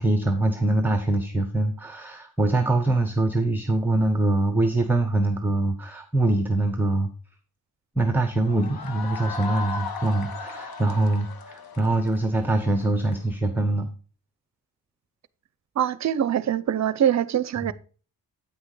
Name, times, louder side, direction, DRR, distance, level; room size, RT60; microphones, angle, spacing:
voice 1, 0.0-7.1 8.0-13.9 17.6-17.7, right 2 dB, 5° right, 0.7 m, -23 dB
sound 1, 8.4-13.2, left 4 dB, 70° left, 1.4 m, -36 dB
voice 2, 15.8-17.7, right 10 dB, 45° right, 0.6 m, -23 dB
8.9 x 6.1 x 4.8 m
wide cardioid pair, 155°, 38 cm